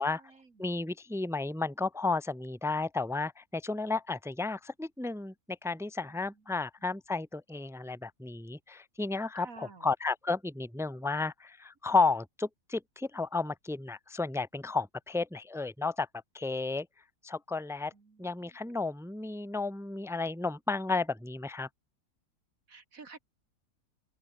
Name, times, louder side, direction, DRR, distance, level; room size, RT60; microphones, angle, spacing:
voice 1, 0.0-0.7 6.1-6.3 9.3-9.9 17.9-18.7 22.7-23.2, right 4 dB, 60° right, 3.0 m, -52 dB
voice 2, 0.6-16.1 16.3-16.9 17.2-17.9 18.2-21.7, left 3 dB, 5° right, 0.6 m, -32 dB
open air
omnidirectional pair, 1.6 m